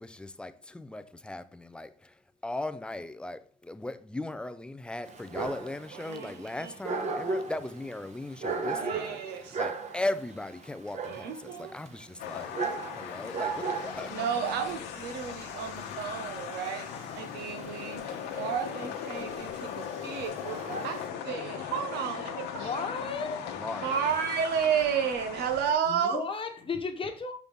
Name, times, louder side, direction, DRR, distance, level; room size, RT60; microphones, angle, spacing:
voice 1, 0.0-2.1 2.4-12.6 12.9-14.2 23.5-23.9, left 2 dB, 5° left, 0.5 m, -38 dB
Dog, 5.0-21.1, right 4 dB, 40° right, 1.1 m, -37 dB
voice 2, 5.9-6.8 8.7-9.6 11.1-11.7 14.1-16.9 17.1-22.8 23.8-26.2, right 8 dB, 80° right, 1.2 m, -32 dB
sound 1, 12.2-25.7, left 8 dB, 90° left, 1.0 m, -38 dB
voice 3, 22.6-23.4 25.9-27.3, left 4 dB, 30° left, 1.2 m, -34 dB
6.0 x 5.4 x 3.5 m
cardioid pair, 110°, 17 cm